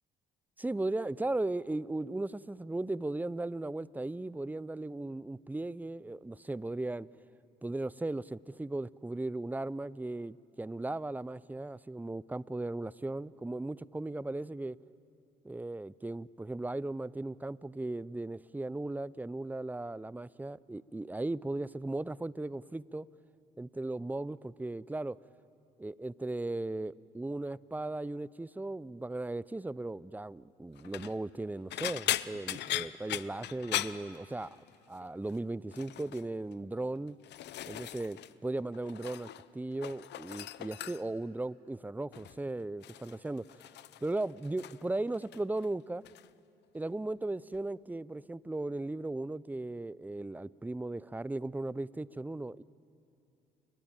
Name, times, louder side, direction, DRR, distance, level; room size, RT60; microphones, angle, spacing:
voice 1, 0.6-7.1 7.6-14.8 15.4-23.1 23.6-25.2 25.8-34.5 34.9-37.2 37.7-43.6 44.0-46.0 46.7-52.6, right 2 dB, 10° right, 20 dB, 0.5 m, -37 dB
Rummaging Through the Cabinates, 30.8-31.1 31.7-34.8 35.0-35.4 35.7-36.2 36.9-38.3 38.6-39.5 39.7-41.2 42.1-42.4 42.8-44.9 45.1-45.7 46.0-46.3 47.5-47.6, left 13 dB, 70° left, 0.7 m, -39 dB
29.5 x 22.0 x 9.0 m, 2.7 s
supercardioid pair, 70°, 18 cm